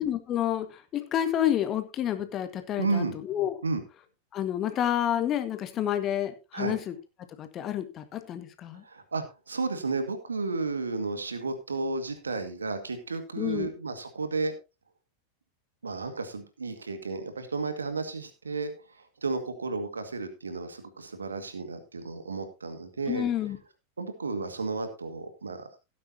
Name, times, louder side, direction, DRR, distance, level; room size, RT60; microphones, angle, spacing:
voice 1, 0.0-3.6 4.3-6.9 7.4-8.8 13.4-13.7 23.1-23.6, left 11 dB, 30° left, 9 dB, 1.7 m, -29 dB
voice 2, 2.8-3.2 3.6-3.8 6.5-6.8 8.8-14.5 15.8-23.2 24.0-25.7, right 3 dB, 75° right, 9 dB, 2.0 m, -33 dB
16.5 x 9.6 x 2.8 m, 0.27 s
figure-of-eight pair, 90°, 0 cm